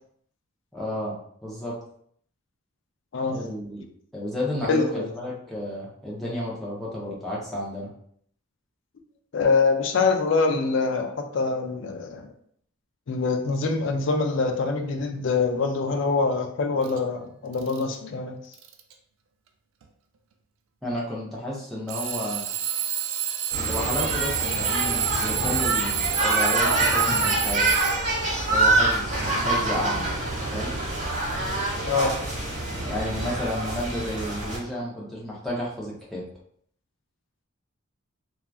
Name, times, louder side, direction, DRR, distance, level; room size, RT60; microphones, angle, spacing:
voice 1, 0.7-1.2 1.4-1.7 3.3-3.8 4.1-7.9 20.8-22.5 23.7-27.7 28.5-30.1 30.5-30.7 32.8-36.2, left 1 dB, ahead, -7 dB, 0.6 m, -32 dB
voice 2, 4.7-5.1 9.3-12.3 13.1-18.4 31.9-32.1, left 4 dB, 55° left, 4 dB, 0.4 m, -24 dB
Alarm / Clock, 16.8-17.0 17.5-18.0 18.5-18.9 19.8-19.9 21.9-28.3, right 10 dB, 70° right, 0.3 m, -28 dB
sound 1, 23.5-34.6, right 2 dB, 35° right, 1.0 m, -26 dB
2.9 x 2.3 x 2.3 m, 0.65 s
head